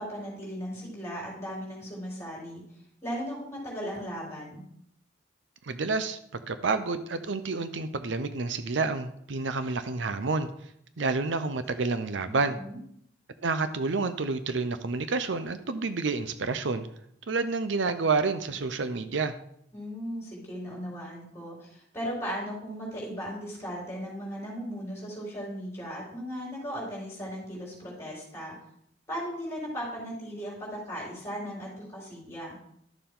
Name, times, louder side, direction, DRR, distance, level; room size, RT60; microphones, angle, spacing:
voice 1, 0.0-2.6 3.0-4.6 12.3-12.8 19.7-28.5 29.1-32.6, equal, 15° left, -5 dB, 4.1 m, -37 dB
voice 2, 5.6-10.5 11.0-12.6 13.4-16.9 17.3-19.3, right 3 dB, 80° right, 11 dB, 0.7 m, -29 dB
12.0 x 6.9 x 3.8 m, 0.70 s
head